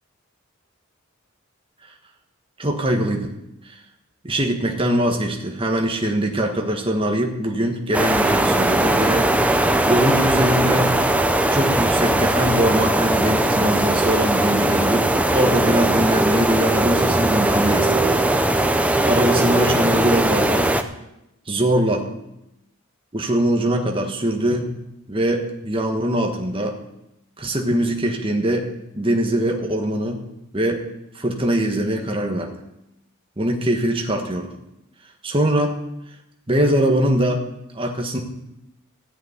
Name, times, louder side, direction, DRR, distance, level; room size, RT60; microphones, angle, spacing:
voice 1, 2.6-3.3 3.7-3.8 4.2-10.9 11.5-18.2 18.6-20.8 21.5-22.1 23.1-24.7 25.1-26.8 27.4-28.7 29.0-30.3 30.5-30.9 31.1-32.5 33.4-34.5 35.2-35.8 36.5-37.5 37.7-38.2, right 1 dB, 25° right, 2 dB, 1.4 m, -22 dB
sound 1, 7.9-20.8, right 1 dB, 5° right, 0.6 m, -19 dB
14.0 x 6.4 x 9.3 m, 0.89 s
head